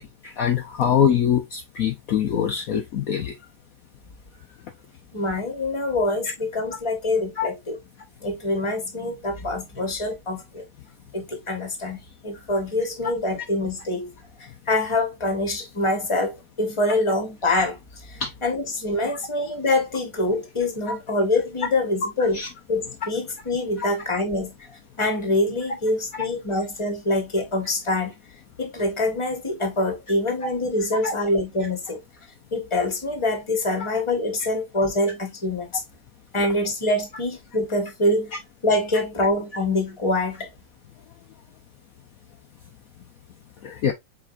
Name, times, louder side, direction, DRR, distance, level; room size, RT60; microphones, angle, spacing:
voice 1, 0.2-3.3 7.4-7.5 18.2-18.3 19.1-19.2 20.9-21.0 22.3-22.5 23.8-23.9 31.0-31.1 43.6-43.9, left 8 dB, 60° left, 1.1 m, -23 dB
voice 2, 5.1-7.8 8.2-10.6 11.1-14.1 14.7-17.8 18.1-22.4 22.7-28.1 28.6-32.0 32.5-35.7 36.3-38.3 38.6-40.5, left 2 dB, 20° left, 1.3 m, -25 dB
5.1 x 4.1 x 2.5 m
omnidirectional pair, 1.8 m